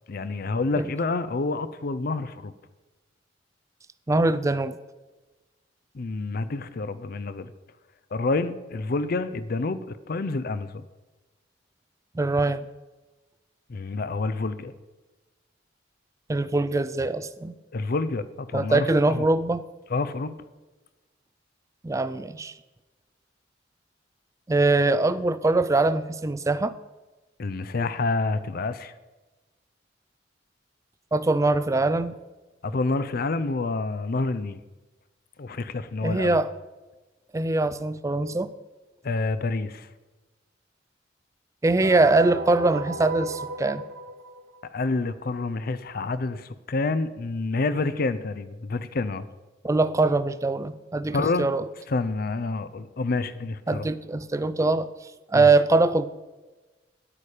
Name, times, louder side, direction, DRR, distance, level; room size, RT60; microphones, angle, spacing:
voice 1, 0.1-2.5 5.9-7.5 8.1-10.8 13.7-14.7 17.7-19.3 19.9-20.3 27.4-28.9 32.6-34.6 35.4-36.4 39.0-39.9 44.7-49.2 51.1-51.5 51.9-53.9 55.3-55.5, left 3 dB, 50° left, 14 dB, 0.5 m, -28 dB
voice 2, 4.1-4.8 12.2-12.6 16.3-17.5 18.5-19.6 21.8-22.5 24.5-26.8 31.1-32.1 36.0-36.5 37.3-38.5 41.6-43.8 49.6-51.6 53.7-54.9 55.3-56.0, right 2 dB, 15° right, 15 dB, 0.3 m, -22 dB
sound 1, 41.8-44.7, right 2 dB, 55° right, 0.8 m, -34 dB
10.0 x 8.6 x 4.9 m, 1.2 s
head